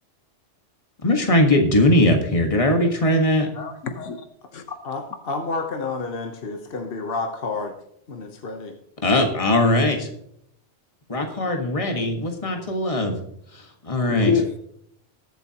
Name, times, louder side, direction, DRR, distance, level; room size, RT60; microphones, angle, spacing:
voice 1, 1.0-3.5 9.0-10.1 11.1-13.2 13.5-14.3, left 1 dB, 30° left, 3 dB, 1.6 m, -20 dB
voice 2, 3.6-4.2 4.5-4.8 14.1-14.6, left 6 dB, 90° left, 7 dB, 1.4 m, -26 dB
voice 3, 4.8-7.7 8.1-8.8, left 3 dB, 55° left, 4 dB, 1.2 m, -30 dB
20.0 x 7.7 x 2.9 m, 0.73 s
omnidirectional pair, 1.2 m